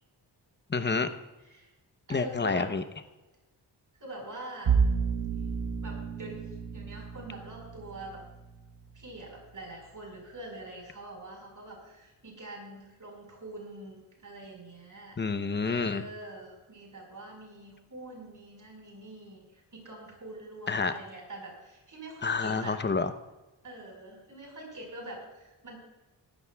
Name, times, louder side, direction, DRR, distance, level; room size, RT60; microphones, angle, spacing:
voice 1, 0.7-1.1 2.1-2.8 15.2-16.0 20.7-20.9 22.2-23.1, left 4 dB, 25° left, 9 dB, 0.8 m, -28 dB
voice 2, 2.1-2.7 4.0-4.8 5.8-6.5 6.7-8.2 8.9-15.2 15.6-22.8 23.6-25.8, right 1 dB, 45° right, 0 dB, 4.7 m, -44 dB
Bowed string instrument, 4.6-9.7, right 6 dB, 80° right, 1.3 m, -31 dB
18.0 x 13.5 x 2.3 m, 1.1 s
wide cardioid pair, 95°, 42 cm